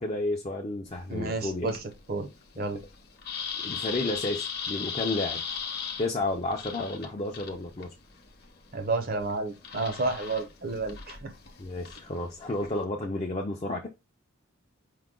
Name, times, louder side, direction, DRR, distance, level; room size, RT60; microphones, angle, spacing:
voice 1, 0.0-1.8 2.7-2.8 3.6-5.4 6.0-7.9 11.6-13.9, left 2 dB, 30° left, 0.4 m, -31 dB
sound 1, 0.9-12.8, left 6 dB, 50° left, 0.8 m, -39 dB
voice 2, 1.1-1.8 2.1-2.3 2.6-2.8 8.7-11.3, right 3 dB, 45° right, 0.6 m, -31 dB
4.7 x 2.2 x 3.6 m
head